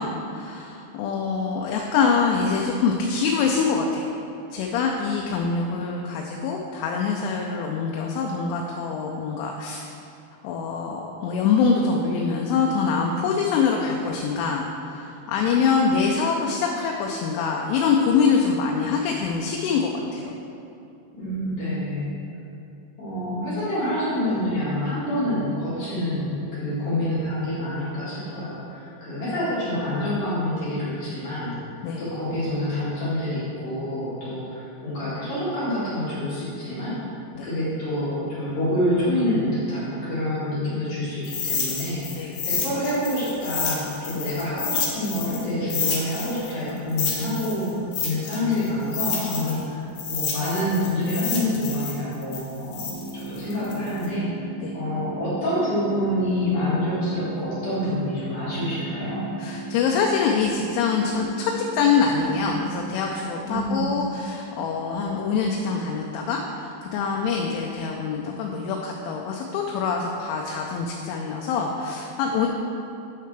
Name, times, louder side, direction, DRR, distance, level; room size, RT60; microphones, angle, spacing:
voice 1, 0.0-4.1 4.5-9.9 10.4-20.3 26.9-27.1 31.8-32.1 37.3-37.5 42.1-42.5 44.1-44.3 49.5-49.7 54.6-54.8 59.4-72.5, left 5 dB, 90° left, 0 dB, 3.0 m, -24 dB
voice 2, 21.1-22.1 23.0-31.6 32.0-37.0 37.4-47.7 48.0-49.8 50.1-52.8 53.1-54.3 54.7-59.2 63.4-63.9, left 1 dB, 55° left, -10 dB, 2.7 m, -27 dB
sound 1, 41.2-45.4 45.7-49.6 50.0-54.1, left 5 dB, 70° left, 2.5 m, -29 dB
sound 2, 52.9-62.9, right 3 dB, 70° right, 2.4 m, -37 dB
8.8 x 6.6 x 3.3 m, 2.7 s
omnidirectional pair, 5.4 m